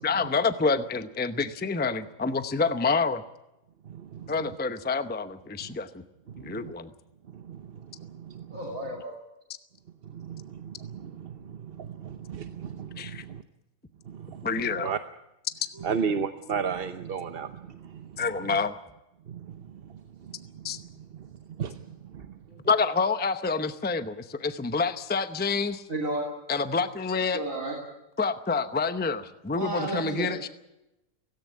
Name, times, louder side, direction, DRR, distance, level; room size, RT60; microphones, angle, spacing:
voice 1, 0.0-3.2 4.3-6.0 6.4-6.9 13.0-13.2 14.4-14.9 18.2-18.7 20.6-20.8 22.7-25.8 26.5-27.4 28.2-30.5, left 4 dB, 10° left, 11 dB, 0.6 m, -27 dB
voice 2, 3.9-4.3 5.6-5.7 6.3-6.7 7.3-8.6 10.0-13.4 14.1-14.5 14.8-15.0 15.8-18.3 19.3-20.8 21.1-21.3 21.6-21.9 22.1-22.3, right 6 dB, 45° right, 9 dB, 0.9 m, -35 dB
voice 3, 8.5-9.2 15.7-15.9 22.5-22.6 25.9-26.2 27.3-27.8 29.5-30.3, right 1 dB, 65° right, -1 dB, 3.4 m, -32 dB
17.5 x 17.0 x 9.6 m, 0.91 s
omnidirectional pair, 1.5 m